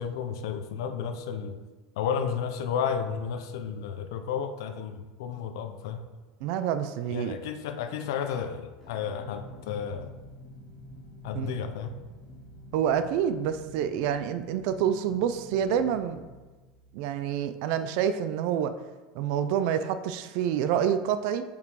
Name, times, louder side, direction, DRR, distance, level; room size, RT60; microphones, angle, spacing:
voice 1, 0.0-1.6 2.0-6.0 7.1-10.1 11.2-11.9, left 7 dB, 90° left, 8 dB, 0.6 m, -32 dB
voice 2, 6.4-7.4 11.3-11.5 12.7-16.2 16.9-18.7 19.1-21.4, right 9 dB, 55° right, 10 dB, 0.4 m, -27 dB
sound 1, 8.8-17.5, equal, 10° left, 2.0 m, -48 dB
5.3 x 5.1 x 4.7 m, 1.3 s
cardioid pair, 175°, 2 cm